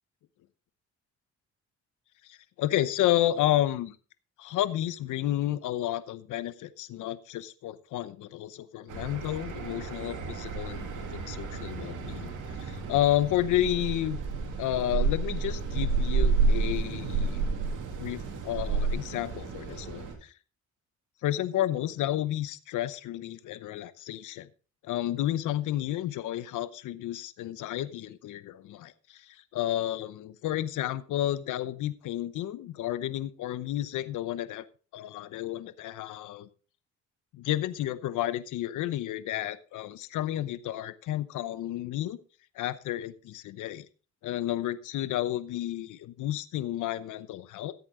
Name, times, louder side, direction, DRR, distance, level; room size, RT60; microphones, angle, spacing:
voice 1, 2.2-4.0 4.4-14.2 14.6-17.4 18.0-20.3 21.2-24.5 24.8-34.6 34.9-36.5 37.3-42.2 42.5-43.9 44.2-47.7, left 13 dB, 85° left, 14 dB, 0.9 m, -31 dB
sound 1, 8.9-20.1, right 4 dB, 85° right, 2.7 m, -30 dB
14.5 x 8.3 x 3.8 m, 0.36 s
cardioid pair, 90°, 30 cm